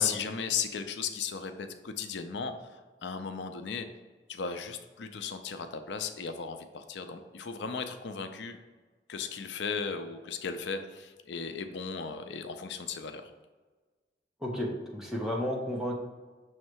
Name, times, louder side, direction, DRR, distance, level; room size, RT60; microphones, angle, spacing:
voice 1, 0.0-3.9 4.3-8.6 9.1-13.3, left 6 dB, 90° left, 7 dB, 0.5 m, -36 dB
voice 2, 14.4-15.9, equal, 5° right, -3 dB, 0.9 m, -32 dB
6.4 x 3.2 x 4.6 m, 1.3 s
head